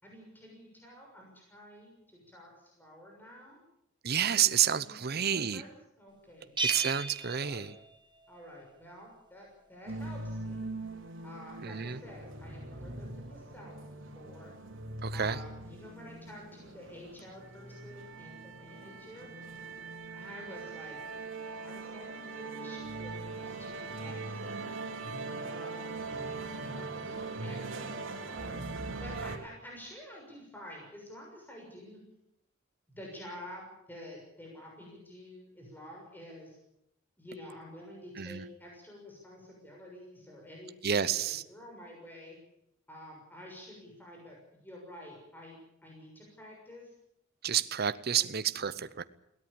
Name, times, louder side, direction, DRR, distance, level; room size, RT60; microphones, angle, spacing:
voice 1, 0.0-3.6 4.2-6.5 7.2-7.7 8.3-10.7 11.2-14.5 15.1-19.3 20.1-21.0 21.6-24.6 25.4-28.7 29.0-32.0 32.9-36.6 37.2-42.4 42.9-45.5 45.8-46.9, left 1 dB, 10° left, -1 dB, 6.6 m, -50 dB
voice 2, 4.0-5.6 6.6-7.7 11.6-12.0 15.0-15.4 38.2-38.4 40.8-41.4 47.4-49.0, right 9 dB, 55° right, 13 dB, 0.8 m, -29 dB
Bell, 6.6-8.4, right 3 dB, 25° right, 1.8 m, -35 dB
sound 1, 9.9-29.4, right 3 dB, 75° right, 3.4 m, -41 dB
22.0 x 17.5 x 8.8 m, 0.78 s
head